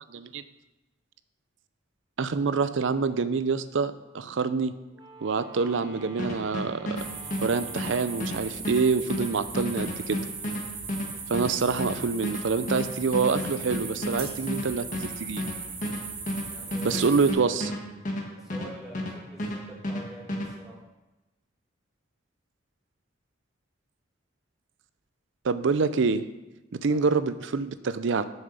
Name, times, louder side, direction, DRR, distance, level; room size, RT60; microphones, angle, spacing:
voice 1, 2.2-4.7 5.2-7.0 7.4-10.2 11.3-15.4 16.8-17.7 25.4-26.2 26.7-28.3, right 4 dB, 80° right, 13 dB, 0.5 m, -26 dB
Wind instrument woodwind instrument, 4.9-8.5, right 2 dB, 25° right, 0.9 m, -47 dB
sound 1, 6.2-19.1 19.4-20.5, left 1 dB, 40° left, 1.5 m, -32 dB
sound 2, 7.0-17.3, right 5 dB, 55° right, 1.8 m, -39 dB
voice 2, 16.5-17.0 18.3-20.8 26.8-27.1, equal, ahead, -4 dB, 1.3 m, -46 dB
7.3 x 6.6 x 6.8 m, 1.0 s
head